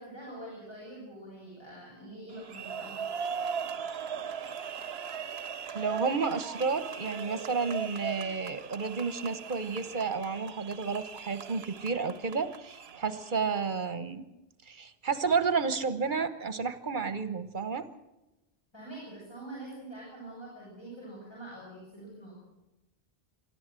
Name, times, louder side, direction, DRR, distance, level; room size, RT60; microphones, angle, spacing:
voice 1, 0.0-3.1 4.8-4.9 18.7-22.3, right 1 dB, 25° left, -5 dB, 7.4 m, -45 dB
sound 1, 2.3-13.4, right 7 dB, 75° right, 1.1 m, -39 dB
voice 2, 5.7-14.2 14.7-17.9, right 5 dB, 50° right, 11 dB, 1.3 m, -31 dB
24.5 x 14.0 x 7.6 m, 0.99 s
omnidirectional pair, 1.1 m